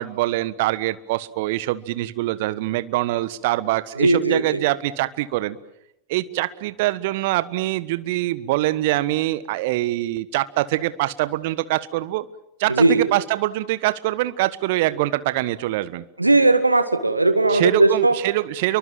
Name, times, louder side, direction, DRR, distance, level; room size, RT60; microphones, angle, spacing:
voice 1, 0.0-5.6 6.1-12.3 12.6-16.0 17.5-18.8, right 17 dB, 50° right, 16 dB, 1.3 m, -24 dB
voice 2, 4.0-4.6 12.7-13.0 16.2-18.2, right 2 dB, 85° right, 9 dB, 2.3 m, -18 dB
29.5 x 23.5 x 7.5 m, 0.82 s
figure-of-eight pair, 90°, 0 cm